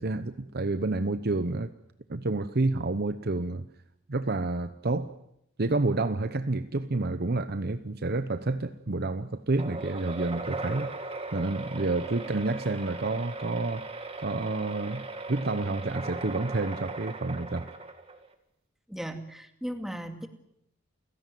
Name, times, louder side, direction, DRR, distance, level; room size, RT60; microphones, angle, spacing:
voice 1, 0.0-1.7 2.1-3.7 4.1-5.1 5.6-10.9 11.3-13.9 14.2-17.7, right 2 dB, 50° right, 0.9 m, -29 dB
sound 1, 9.6-18.3, right 3 dB, 30° right, 2.5 m, -38 dB
voice 2, 18.9-20.3, equal, ahead, 2.5 m, -36 dB
29.5 x 17.0 x 9.3 m
head